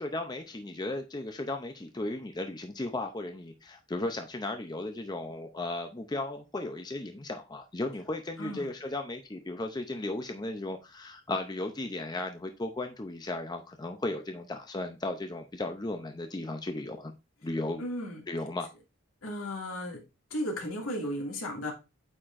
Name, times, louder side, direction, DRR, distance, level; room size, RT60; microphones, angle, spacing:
voice 1, 0.0-17.1 17.4-17.8 18.3-18.7, left 2 dB, 20° left, 0.5 m, -35 dB
voice 2, 8.4-8.7 17.8-18.2 19.2-20.0 20.3-21.7, equal, 80° left, 2.1 m, -35 dB
8.5 x 4.4 x 2.5 m
head